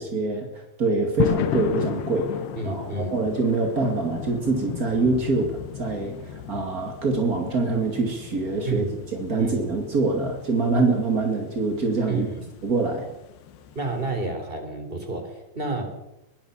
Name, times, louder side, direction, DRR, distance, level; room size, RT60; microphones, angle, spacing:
voice 1, 0.0-8.8 9.1-12.3 12.6-13.1, right 3 dB, 45° right, 3 dB, 1.1 m, -25 dB
sound 1, 1.2-14.1, left 9 dB, 70° left, 3.1 m, -35 dB
voice 2, 2.5-3.2 8.6-8.9 9.4-9.7 12.1-12.4 13.7-15.8, right 2 dB, 15° right, 6 dB, 3.4 m, -30 dB
22.0 x 18.0 x 7.2 m, 0.93 s
omnidirectional pair, 5.4 m